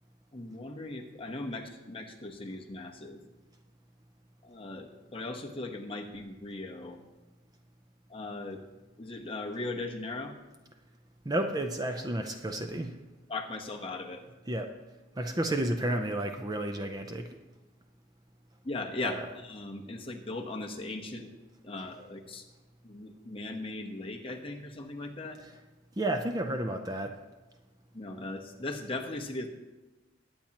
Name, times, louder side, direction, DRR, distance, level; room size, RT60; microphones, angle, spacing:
voice 1, 0.3-3.2 4.4-7.0 8.1-8.6 9.0-10.3 13.3-14.2 18.6-21.3 21.6-22.4 22.8-25.4 27.9-29.5, left 2 dB, 25° left, 2 dB, 1.0 m, -38 dB
voice 2, 11.3-13.0 14.5-14.7 15.2-17.3 19.0-19.3 21.8-21.9 25.4-25.5 26.0-27.2, right 1 dB, 20° right, 5 dB, 0.5 m, -32 dB
20.5 x 8.6 x 2.9 m, 1.1 s
head